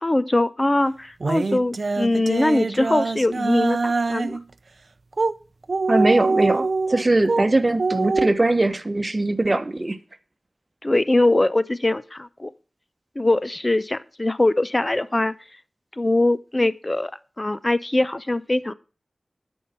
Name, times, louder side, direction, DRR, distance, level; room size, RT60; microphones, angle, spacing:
voice 1, 0.0-4.4 10.8-12.5 13.2-15.3 16.0-17.1 17.4-18.7, left 2 dB, 30° left, 0.5 m, -22 dB
sound 1, 1.2-4.4 5.1-5.3 5.6-7.5 7.8-8.3, right 3 dB, 70° right, 0.5 m, -24 dB
voice 2, 5.9-10.0, right 2 dB, 35° right, 1.0 m, -21 dB
12.0 x 5.4 x 5.8 m
wide cardioid pair, 60°, 0 cm